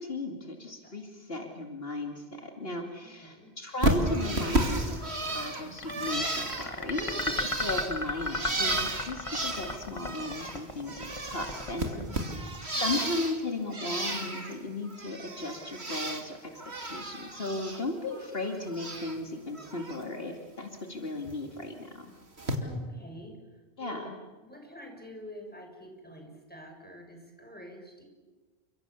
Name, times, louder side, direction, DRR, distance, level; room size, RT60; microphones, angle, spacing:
voice 1, 0.0-11.9 12.8-16.4 16.8-22.1 23.8-24.1, left 2 dB, 65° left, 3 dB, 2.7 m, -36 dB
voice 2, 3.0-3.5 7.1-7.6 11.9-12.5 22.6-28.0, equal, 10° left, 2 dB, 6.5 m, -47 dB
Bird, 3.8-10.6 10.9-13.4 13.7-14.6 14.9-16.2 16.6-17.8 18.1-19.2 19.6-20.0 21.3-21.4 22.4-22.6, right 2 dB, 85° right, 3.1 m, -33 dB
sound 1, 5.8-12.9, left 2 dB, 30° left, 2.0 m, -35 dB
29.5 x 26.0 x 7.2 m, 1.3 s
omnidirectional pair, 1.1 m